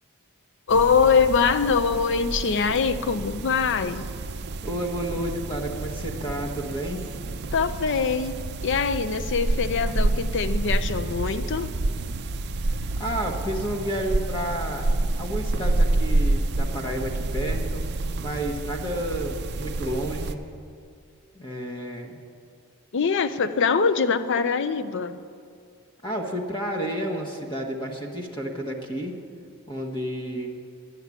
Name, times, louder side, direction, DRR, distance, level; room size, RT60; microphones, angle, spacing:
voice 1, 0.7-4.1 7.5-11.7 22.9-25.2, left 5 dB, 55° left, 12 dB, 0.5 m, -23 dB
sound 1, 0.7-20.3, right 2 dB, 50° right, 0.5 m, -28 dB
voice 2, 4.6-7.0 12.8-14.9 15.2-17.8 18.2-20.4 21.3-22.2 26.0-29.1 29.7-30.5, right 1 dB, 20° left, 1 dB, 1.2 m, -31 dB
10.5 x 7.4 x 9.5 m, 2.3 s
head